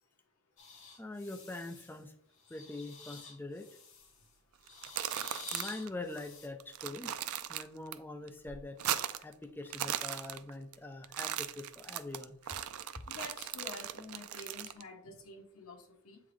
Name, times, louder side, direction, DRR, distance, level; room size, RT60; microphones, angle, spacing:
sound 1, 0.6-2.0 2.4-4.3 4.6-6.5, left 4 dB, 60° left, 1.4 m, -50 dB
voice 1, 1.0-2.1 2.5-3.7 5.5-7.1 7.5-12.4, left 2 dB, 10° left, 4 dB, 0.4 m, -44 dB
sound 2, 4.7-5.9 6.2-6.3 6.6-8.0 8.3-9.3 9.6-10.8 11.0-14.8, right 11 dB, 85° right, 0.4 m, -38 dB
voice 2, 13.1-16.2, left 3 dB, 85° left, 4 dB, 1.1 m, -48 dB
7.9 x 3.8 x 3.1 m, 0.65 s
head